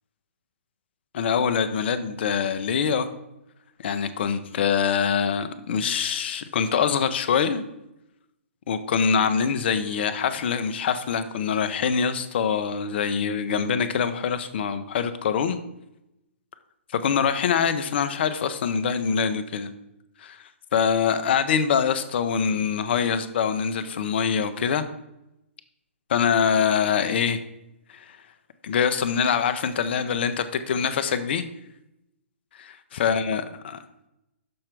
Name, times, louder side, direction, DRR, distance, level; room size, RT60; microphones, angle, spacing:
voice 1, 1.1-3.1 3.8-7.6 8.7-15.6 16.9-19.7 20.2-20.4 20.7-24.8 26.1-27.4 27.9-28.2 28.6-31.5 32.6-33.8, left 7 dB, 55° left, 10 dB, 0.7 m, -24 dB
6.5 x 4.4 x 5.9 m, 0.88 s
hypercardioid pair, 140°, 7 cm